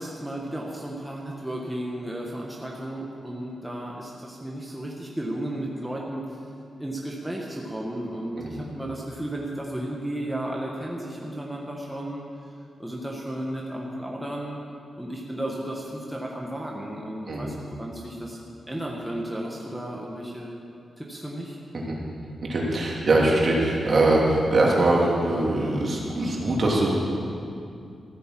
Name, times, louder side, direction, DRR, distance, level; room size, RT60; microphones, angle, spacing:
voice 1, 0.0-6.4 6.8-12.3 12.8-14.6 15.0-18.4 18.7-20.5 21.0-21.6, right 1 dB, 5° right, -2 dB, 1.5 m, -34 dB
voice 2, 22.5-27.0, right 2 dB, 45° right, -3 dB, 3.0 m, -22 dB
14.5 x 9.0 x 7.7 m, 2.5 s
wide cardioid pair, 110°, 0 cm